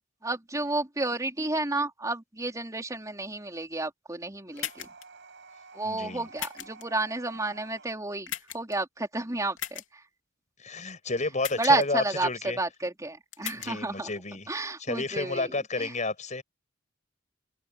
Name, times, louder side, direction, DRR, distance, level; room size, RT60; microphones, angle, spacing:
voice 1, 0.2-4.9 5.7-10.0 11.6-14.1 14.5-15.9, right 2 dB, 15° right, 3.9 m, -31 dB
sound 1, 4.5-7.9, right 4 dB, 65° right, 7.0 m, -51 dB
sound 2, 4.6-5.0 6.4-6.8 8.3-8.7 9.6-9.9 11.4-11.8 13.3-13.7, left 11 dB, 80° left, 3.1 m, -37 dB
voice 2, 5.8-6.3 10.6-12.6 13.5-14.5 14.8-16.4, left 3 dB, 40° left, 6.6 m, -31 dB
head